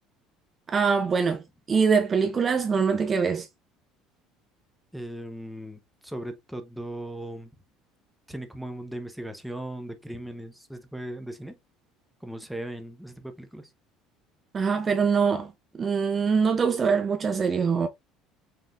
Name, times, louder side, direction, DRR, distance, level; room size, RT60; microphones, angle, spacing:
voice 1, 0.7-1.4 1.7-3.5 14.5-17.9, right 5 dB, 25° right, 0.6 m, -23 dB
voice 2, 4.9-7.5 8.3-11.5 12.2-13.7, right 1 dB, ahead, 0.9 m, -38 dB
5.7 x 3.6 x 2.5 m
cardioid pair, 135°, 0 cm